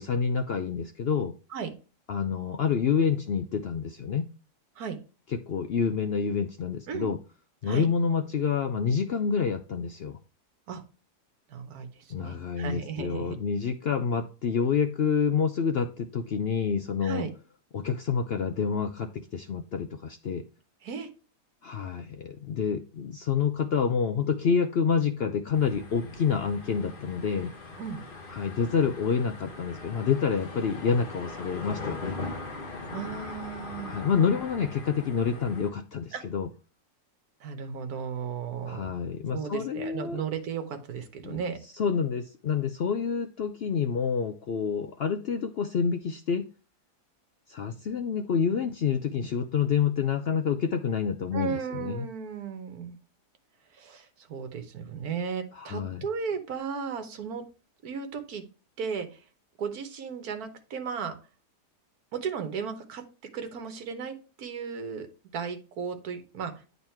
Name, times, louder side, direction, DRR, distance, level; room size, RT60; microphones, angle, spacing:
voice 1, 0.0-1.3 2.1-4.3 5.5-7.2 7.6-10.2 12.1-17.3 17.7-20.4 21.6-27.5 28.3-32.2 33.9-36.5 38.7-40.2 41.2-41.4 41.7-46.4 47.5-52.1 55.5-56.1, left 6 dB, 75° left, 7 dB, 0.5 m, -28 dB
voice 2, 11.5-13.3 17.0-17.3 20.8-21.1 27.8-28.0 32.9-34.0 36.1-36.2 37.4-38.9 39.3-41.6 51.3-53.0 53.7-57.4 57.8-58.4 58.8-59.2 59.6-61.1 62.1-63.0 63.3-65.1 65.3-66.7, right 6 dB, 70° right, 7 dB, 1.6 m, -35 dB
sound 1, 25.5-35.7, left 3 dB, 35° left, 1.6 m, -40 dB
8.9 x 4.0 x 4.4 m, 0.34 s
omnidirectional pair, 1.7 m